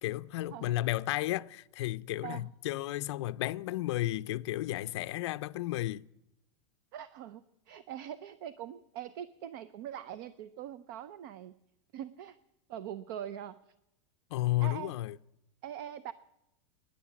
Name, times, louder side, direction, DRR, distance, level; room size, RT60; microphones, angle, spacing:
voice 1, 0.0-6.0 14.3-15.2, left 16 dB, 60° left, 0.5 m, -33 dB
voice 2, 6.9-11.5 11.9-12.4 12.7-13.6 14.6-14.9 15.6-16.1, right 10 dB, 45° right, 0.6 m, -42 dB
19.5 x 10.5 x 7.1 m
supercardioid pair, 175°, 16 cm